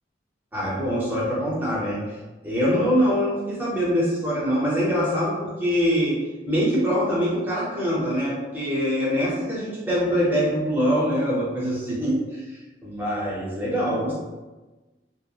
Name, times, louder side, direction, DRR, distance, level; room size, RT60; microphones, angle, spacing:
voice 1, 0.5-2.2 2.4-14.2, equal, 10° right, -7 dB, 0.7 m, -24 dB
2.9 x 2.1 x 2.4 m, 1.2 s
head